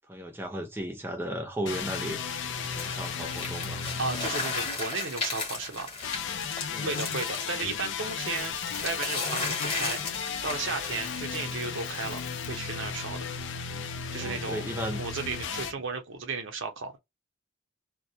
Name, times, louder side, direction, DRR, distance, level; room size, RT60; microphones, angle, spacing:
voice 1, 0.1-2.2 2.6-3.8 6.7-7.0 14.2-15.0 15.5-15.7, equal, 10° right, 0.5 m, -35 dB
sound 1, 1.6-5.4 6.0-15.7, left 6 dB, 60° left, 0.4 m, -35 dB
sound 2, 2.8-11.4, left 3 dB, 25° left, 1.0 m, -36 dB
voice 2, 4.0-5.9 6.7-8.6 8.8-10.0 10.4-13.3 14.1-14.7 14.9-17.0, right 4 dB, 65° right, 0.7 m, -34 dB
sound 3, 7.3-13.1, left 7 dB, 80° left, 0.8 m, -51 dB
2.3 x 2.1 x 2.7 m
head